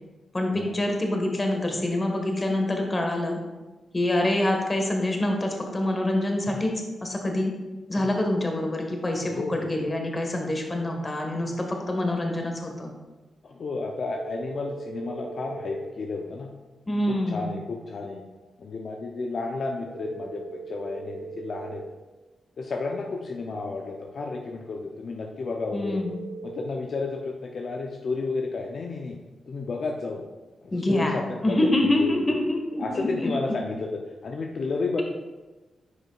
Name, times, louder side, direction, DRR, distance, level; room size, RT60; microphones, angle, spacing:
voice 1, 0.3-3.4 3.9-6.7 7.0-7.5 7.9-12.9 16.9-17.6 25.7-26.1 30.7-31.1 31.4-33.3, left 1 dB, 30° left, 2 dB, 1.5 m, -26 dB
voice 2, 9.2-9.7 13.4-16.5 17.1-18.2 18.6-21.8 22.6-26.0 26.4-29.1 29.5-30.2 30.7-32.4 32.8-35.0, left 3 dB, 65° left, 1 dB, 0.6 m, -32 dB
sound 1, 13.9-15.9 19.9-21.9 25.9-26.7, right 4 dB, 65° right, 0.6 m, -39 dB
9.6 x 5.2 x 2.4 m, 1.2 s
supercardioid pair, 50°, 0 cm